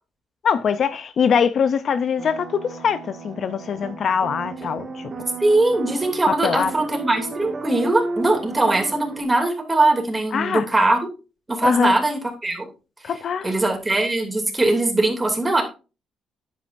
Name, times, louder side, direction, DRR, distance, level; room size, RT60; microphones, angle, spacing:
voice 1, 0.4-5.1 6.3-6.7 10.3-10.7 11.6-11.9 13.0-13.5, left 7 dB, 55° left, 0.6 m, -22 dB
sound 1, 2.2-9.2, right 4 dB, 45° right, 1.9 m, -34 dB
voice 2, 5.4-11.0 11.5-12.6 13.4-15.6, right 2 dB, 20° right, 2.7 m, -21 dB
9.7 x 8.4 x 2.6 m
cardioid pair, 90°, 0 cm